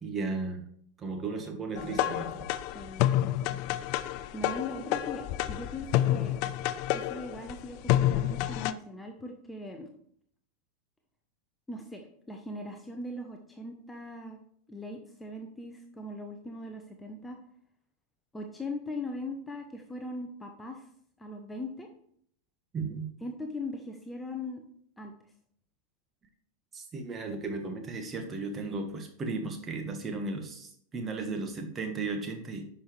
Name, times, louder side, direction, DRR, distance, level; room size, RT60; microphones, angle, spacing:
voice 1, 0.0-0.6 1.0-2.5 22.7-23.1 26.7-32.7, right 3 dB, 20° right, 4 dB, 1.4 m, -35 dB
sound 1, 1.8-8.7, left 13 dB, 45° left, 0.3 m, -29 dB
voice 2, 2.7-3.2 4.3-6.4 6.9-9.9 11.7-14.4 14.7-17.4 18.3-20.9 21.2-21.9 23.2-24.6 25.0-25.1, left 2 dB, 10° left, 3 dB, 0.9 m, -40 dB
10.5 x 5.6 x 3.2 m, 0.65 s
figure-of-eight pair, 90°, 0 cm